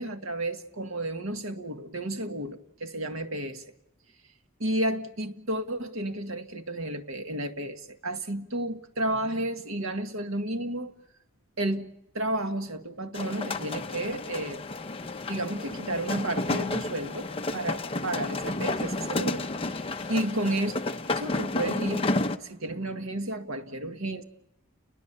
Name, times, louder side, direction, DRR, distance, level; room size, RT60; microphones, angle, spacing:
voice 1, 0.0-3.6 4.6-11.0 11.6-14.6 15.3-20.8 21.1-22.1 22.4-24.2, right 1 dB, 75° right, 1.8 m, -32 dB
sound 1, 13.1-22.4, left 2 dB, 25° left, 0.9 m, -31 dB
30.0 x 21.5 x 6.9 m
head